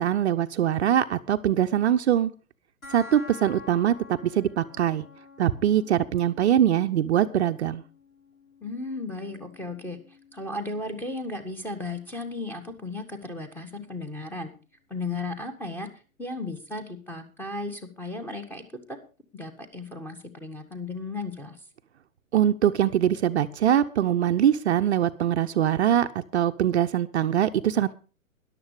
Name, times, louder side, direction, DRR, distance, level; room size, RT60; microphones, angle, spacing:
voice 1, 0.0-2.3 2.9-5.0 5.4-7.8 22.3-27.9, right 10 dB, 50° right, 8 dB, 0.8 m, -23 dB
sound 1, 2.8-13.8, left 3 dB, 75° left, 3.5 m, -50 dB
voice 2, 8.6-10.0 10.3-14.5 14.9-15.9 16.2-19.0 19.3-21.6, left 2 dB, 5° left, 4 dB, 1.7 m, -35 dB
13.5 x 11.0 x 4.9 m, 0.35 s
figure-of-eight pair, 120°, 41 cm